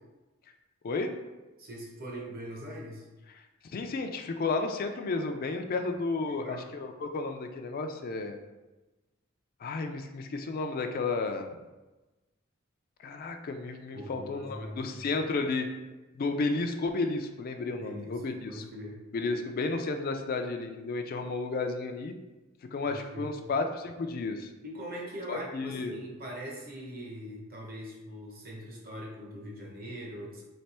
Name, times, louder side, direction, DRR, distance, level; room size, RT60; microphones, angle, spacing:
voice 1, 1.6-3.1 6.2-6.7 13.9-15.0 17.7-19.0 22.8-23.3 24.6-30.4, equal, 45° right, -1 dB, 1.0 m, -42 dB
voice 2, 3.7-8.4 9.6-11.5 13.0-15.7 16.1-18.6 19.1-22.1 22.7-24.5 25.3-26.0, left 3 dB, 45° left, 5 dB, 0.3 m, -32 dB
3.3 x 3.3 x 4.2 m, 1.1 s
head